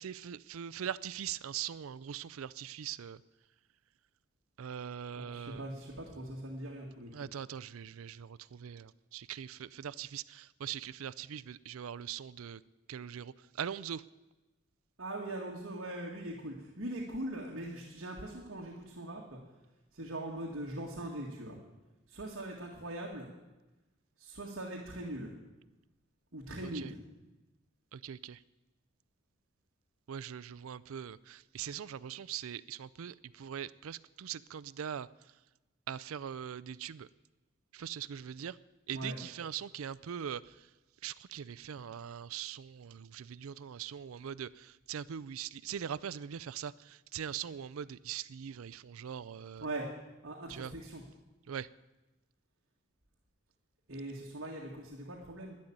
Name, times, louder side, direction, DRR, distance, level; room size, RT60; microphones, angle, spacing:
voice 1, 0.0-3.2 4.6-5.7 7.1-12.6 12.9-14.0 26.6-26.9 27.9-28.4 30.1-35.1 35.9-37.1 37.7-38.6 38.9-40.7 41.0-49.7 50.5-50.7 51.5-51.7, right 9 dB, 80° right, 19 dB, 0.4 m, -41 dB
voice 2, 5.2-7.1 15.0-19.4 19.9-21.6 22.1-23.3 24.2-25.3 26.3-27.0 38.9-39.2 49.6-49.9 50.2-51.0 53.9-55.6, right 1 dB, 65° right, -1 dB, 1.9 m, -41 dB
11.5 x 10.5 x 8.7 m, 1.1 s
head